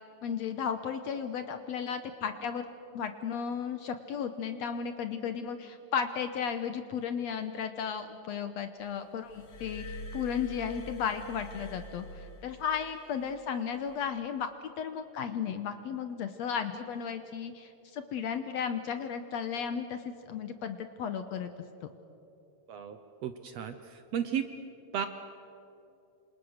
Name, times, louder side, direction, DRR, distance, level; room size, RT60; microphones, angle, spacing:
voice 1, 0.2-2.7 2.9-14.5 14.8-21.5, left 7 dB, 65° left, 9 dB, 1.8 m, -34 dB
Glass, 9.3-12.9 13.9-14.1, equal, 40° left, 1.8 m, -44 dB
voice 2, 22.7-24.5 24.9-25.1, right 8 dB, 65° right, 9 dB, 1.8 m, -34 dB
27.0 x 27.0 x 6.6 m, 2.8 s
omnidirectional pair, 3.8 m